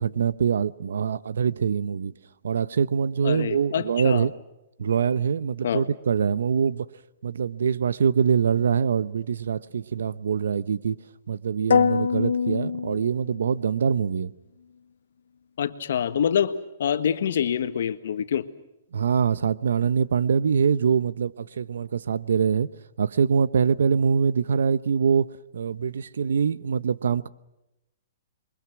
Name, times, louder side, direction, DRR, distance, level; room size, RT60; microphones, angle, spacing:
voice 1, 0.0-2.1 2.4-4.3 4.8-6.9 7.2-11.0 11.3-14.3 18.9-22.7 23.0-25.3 25.5-27.3, right 6 dB, 85° right, 0.9 m, -24 dB
voice 2, 3.2-4.3 5.6-5.8 15.6-16.5 16.8-18.5, left 8 dB, 60° left, 1.6 m, -26 dB
sound 1, 11.7-13.7, left 6 dB, 80° left, 0.8 m, -24 dB
28.0 x 23.5 x 6.1 m
hypercardioid pair, 170°, 0 cm